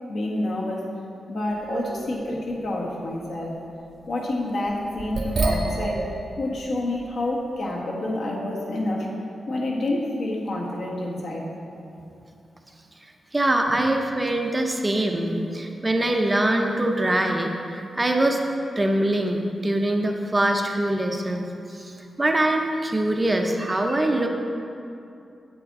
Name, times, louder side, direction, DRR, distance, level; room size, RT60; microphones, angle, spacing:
voice 1, 0.1-0.9 1.3-3.6 4.1-6.1 6.4-9.1 9.5-11.5, left 1 dB, 65° left, -2 dB, 1.3 m, -28 dB
sound 1, 1.5-2.7 3.1-3.2 4.7-6.7 7.2-7.3, right 3 dB, 55° right, 0.8 m, -28 dB
voice 2, 13.3-18.4 18.8-24.3, right 1 dB, 15° right, 3 dB, 0.5 m, -23 dB
7.9 x 7.7 x 3.6 m, 2.7 s
wide cardioid pair, 145°, 0 cm